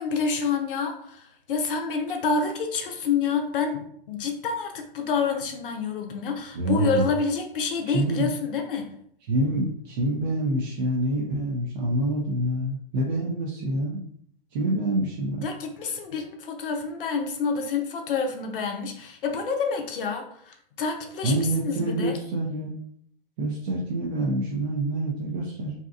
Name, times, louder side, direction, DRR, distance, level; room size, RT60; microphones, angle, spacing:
voice 1, 0.0-3.8 4.1-8.9 15.3-22.2, left 5 dB, 65° left, 4 dB, 0.6 m, -28 dB
voice 2, 6.6-7.0 7.9-8.3 9.3-14.0 14.5-15.4 21.2-22.7 23.4-25.7, right 1 dB, 50° right, -4 dB, 0.6 m, -26 dB
2.7 x 2.3 x 2.4 m, 0.66 s
figure-of-eight pair, 100°, 29 cm